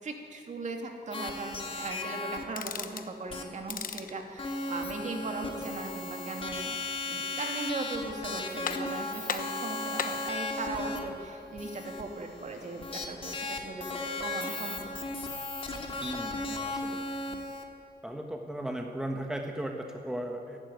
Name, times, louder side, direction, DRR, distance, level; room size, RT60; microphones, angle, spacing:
voice 1, 0.0-6.8 7.1-14.8, right 3 dB, 45° right, 3 dB, 2.7 m, -38 dB
sound 1, 1.1-2.4 3.3-3.4 3.7-3.8 4.4-17.6, left 2 dB, 30° left, 2.4 m, -36 dB
sound 2, 2.6-3.1 3.6-4.2 7.2-7.7 8.1-8.2 8.7-9.0 9.3-10.3, left 7 dB, 55° left, 1.1 m, -36 dB
voice 2, 16.0-17.4 18.0-20.6, right 1 dB, 5° right, 2 dB, 1.3 m, -37 dB
28.0 x 12.0 x 9.3 m, 2.6 s
wide cardioid pair, 160°, 17 cm